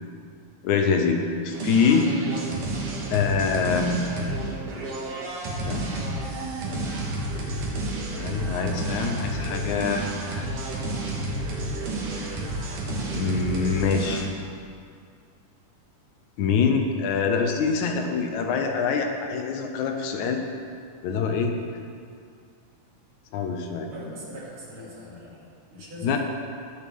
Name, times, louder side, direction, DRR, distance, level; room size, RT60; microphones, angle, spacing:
voice 1, 0.6-2.1 3.1-4.1 5.7-5.8 8.1-10.1 13.1-14.3 16.4-20.4 21.0-21.5 23.3-23.9 26.0-26.2, left 5 dB, 75° left, 4 dB, 2.1 m, -24 dB
sound 1, 1.5-14.2, right 2 dB, 80° right, 3.1 m, -30 dB
voice 2, 23.9-26.2, left 1 dB, 55° right, -7 dB, 3.8 m, -41 dB
20.0 x 7.2 x 3.6 m, 2.3 s
omnidirectional pair, 3.7 m